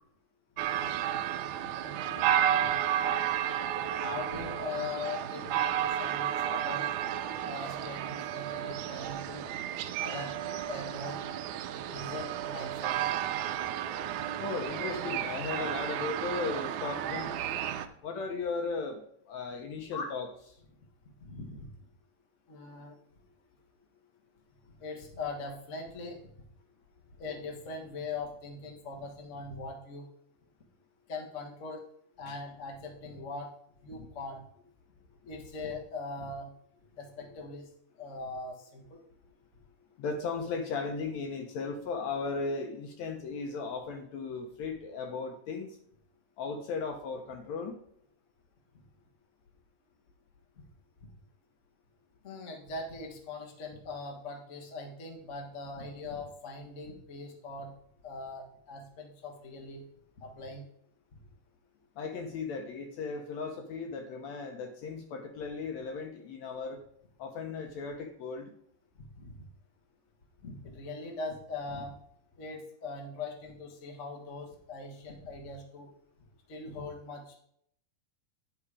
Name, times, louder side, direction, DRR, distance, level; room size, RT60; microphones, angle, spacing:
sound 1, 0.6-17.9, right 10 dB, 80° right, 1.8 m, -32 dB
voice 1, 1.8-2.7 4.0-6.9 7.4-9.5 10.0-10.3 10.6-11.2 11.9-12.9 19.9-20.1 21.2-21.7 22.5-22.9 24.8-26.3 27.2-30.1 31.1-31.8 32.2-33.5 33.8-34.4 35.2-36.5 36.9-37.7 38.0-39.0 50.6-50.7 52.2-57.7 58.0-59.8 60.2-60.6 69.2-69.4 70.4-72.0 72.4-75.9 76.5-77.4, left 3 dB, 45° left, 0 dB, 0.9 m, -41 dB
voice 2, 14.4-17.3 18.0-20.3 32.3-32.4 40.0-45.8 46.4-47.8 62.0-66.8 67.2-68.5, left 4 dB, 70° left, 4 dB, 1.8 m, -36 dB
10.5 x 4.9 x 4.9 m, 0.68 s
omnidirectional pair, 3.7 m